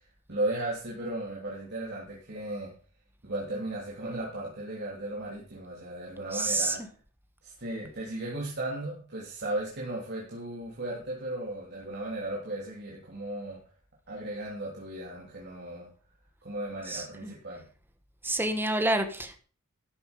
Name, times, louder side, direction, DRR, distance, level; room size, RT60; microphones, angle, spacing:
voice 1, 0.3-2.7 3.2-6.8 7.4-13.6 14.1-15.9 16.4-17.7, right 1 dB, 50° right, -4 dB, 3.2 m, -36 dB
voice 2, 6.3-6.8 16.8-17.3 18.2-19.4, right 1 dB, 10° right, 7 dB, 1.3 m, -28 dB
13.0 x 8.2 x 5.2 m, 0.38 s
head